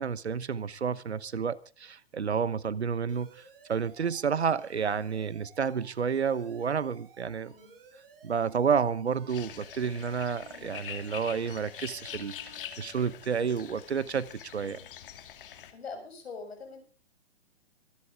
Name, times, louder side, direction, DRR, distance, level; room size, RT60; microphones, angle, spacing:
voice 1, 0.0-3.4 3.7-7.5 8.2-14.8, right 6 dB, 85° right, 1.1 m, -30 dB
Alarm, 3.1-13.1, right 3 dB, 60° right, 5.5 m, -55 dB
sound 1, 9.3-15.7, left 10 dB, 55° left, 2.3 m, -44 dB
voice 2, 10.5-10.8 14.6-14.9 15.7-16.8, left 4 dB, 70° left, 7.3 m, -44 dB
25.0 x 11.5 x 3.6 m
hypercardioid pair, 125°, 32 cm